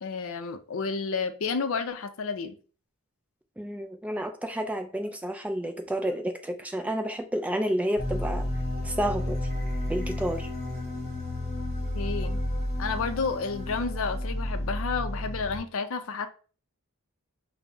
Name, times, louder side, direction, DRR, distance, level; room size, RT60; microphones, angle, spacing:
voice 1, 0.0-2.5 11.9-12.4 12.8-16.3, left 4 dB, 60° left, 10 dB, 0.5 m, -31 dB
voice 2, 3.6-8.5 8.8-9.4 9.9-10.5, right 1 dB, 5° right, 6 dB, 0.3 m, -30 dB
sound 1, 8.0-15.6, left 1 dB, 30° right, 1.2 m, -31 dB
5.2 x 2.0 x 3.3 m, 0.38 s
head